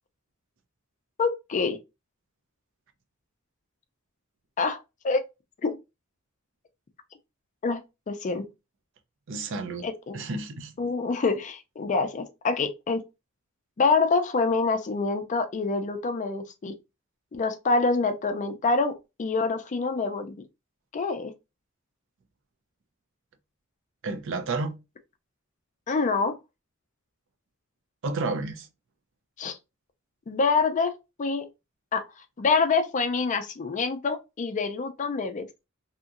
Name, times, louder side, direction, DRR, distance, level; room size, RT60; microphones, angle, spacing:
voice 1, 1.2-1.8 4.6-4.8 5.0-5.2 5.6-5.8 7.6-7.8 8.1-8.5 9.8-10.2 10.8-13.0 13.8-16.8 17.3-20.4 20.9-21.3 25.9-26.4 29.4-29.6 30.3-31.5 31.9-32.0 32.4-35.7, left 4 dB, 35° left, 0.4 m, -26 dB
voice 2, 9.3-9.9 10.1-10.7 24.0-24.8 28.0-28.7, right 3 dB, 65° right, 0.5 m, -31 dB
2.8 x 2.6 x 2.4 m
head